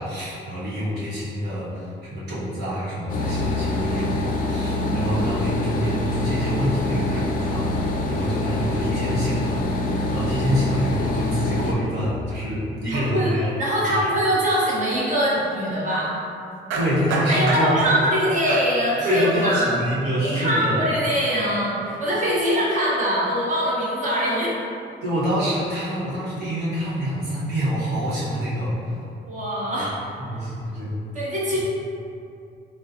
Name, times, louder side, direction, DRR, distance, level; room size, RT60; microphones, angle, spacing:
voice 1, 0.0-9.6 10.1-13.5 16.7-17.7 19.0-20.8 25.0-28.9 30.2-31.0, equal, 55° right, -8 dB, 1.3 m, -26 dB
sound 1, 3.1-11.7, left 2 dB, 45° left, 0.5 m, -25 dB
voice 2, 4.8-5.4 12.9-13.3 13.6-16.1 17.3-19.7 20.2-24.5 29.2-30.0 31.1-31.6, equal, 40° right, -8 dB, 1.0 m, -23 dB
sound 2, 12.9-13.0 13.2-13.6 16.7-18.0 18.5-18.9 19.6-19.8, right 2 dB, 85° right, 0.4 m, -29 dB
4.4 x 2.1 x 2.7 m, 2.5 s
cardioid pair, 90°, 20 cm